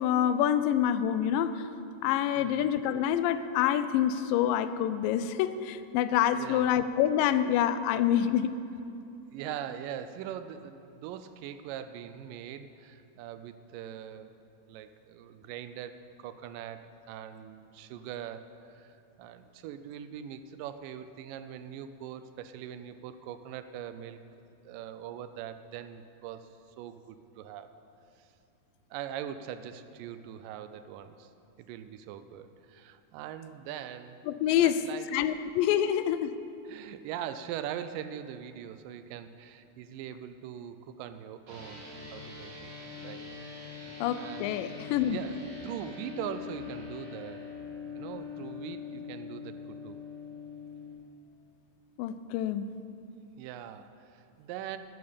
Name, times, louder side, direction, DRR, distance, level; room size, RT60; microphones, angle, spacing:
voice 1, 0.0-1.7 2.0-8.5 34.3-34.7 35.1-36.4 44.0-45.2 52.0-52.7, left 10 dB, 85° left, 13 dB, 2.2 m, -27 dB
voice 2, 2.4-2.7 6.4-6.7 9.3-14.3 14.7-24.2 24.6-26.5 26.8-27.7 28.2-28.3 28.9-31.3 31.6-34.2 34.6-35.1 36.7-42.7 43.0-43.7 44.1-44.7 45.1-45.4 45.6-47.5 48.0-50.0 53.4-54.8, right 10 dB, 85° right, 11 dB, 2.2 m, -42 dB
sound 1, 41.5-50.9, left 5 dB, 40° right, 2.6 m, -43 dB
12.0 x 10.5 x 5.2 m, 2.6 s
omnidirectional pair, 3.9 m